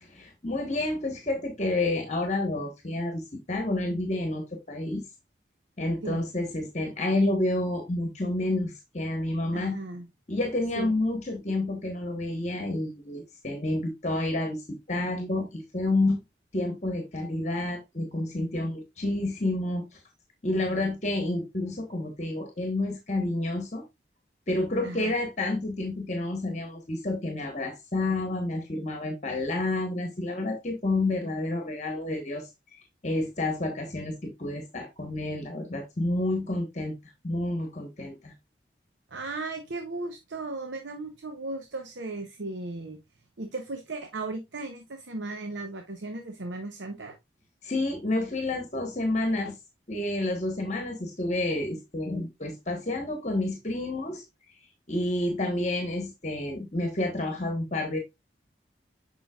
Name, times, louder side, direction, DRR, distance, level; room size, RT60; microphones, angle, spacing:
voice 1, 0.0-5.0 5.8-9.8 10.3-16.2 16.5-20.0 20.4-23.8 24.5-32.5 33.0-36.9 37.2-38.3 47.6-49.6 49.9-54.2 54.9-58.0, left 2 dB, 40° left, 1.2 m, -29 dB
voice 2, 9.5-10.1 10.8-10.9 24.8-25.1 39.1-43.0 43.4-47.2, right 2 dB, 85° right, 0.8 m, -36 dB
7.1 x 5.7 x 2.4 m
head